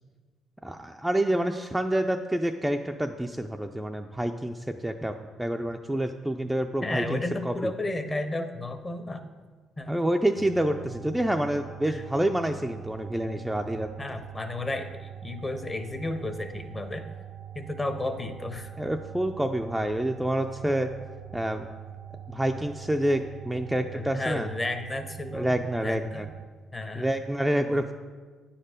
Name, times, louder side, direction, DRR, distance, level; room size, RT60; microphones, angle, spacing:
voice 1, 0.6-7.5 9.9-13.9 18.8-20.9 21.3-21.7 22.3-24.5 25.3-26.3 27.0-27.9, right 1 dB, 5° right, 4 dB, 0.3 m, -28 dB
voice 2, 6.8-9.2 9.8-10.0 11.9-12.0 14.0-17.0 17.5-18.7 23.9-26.3 26.7-27.1 27.7-27.8, left 2 dB, 20° left, 8 dB, 0.7 m, -33 dB
sound 1, 10.4-26.5, right 10 dB, 90° right, 0.6 m, -43 dB
9.2 x 4.4 x 5.0 m, 1.5 s
cardioid pair, 95°, 0 cm